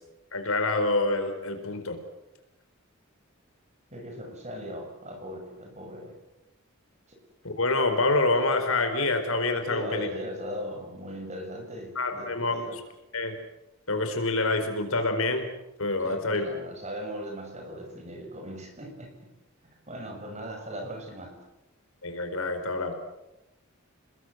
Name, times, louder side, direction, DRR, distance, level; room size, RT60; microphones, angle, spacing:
voice 1, 0.3-2.0 7.4-10.1 11.9-12.6 13.1-13.3 13.9-15.5 15.8-16.4 22.0-23.0, left 2 dB, 75° left, 7 dB, 4.5 m, -26 dB
voice 2, 3.9-6.1 7.1-7.2 9.7-12.8 16.0-19.3 19.9-21.3, equal, 30° right, 3 dB, 6.4 m, -38 dB
29.0 x 21.0 x 8.0 m, 0.94 s
head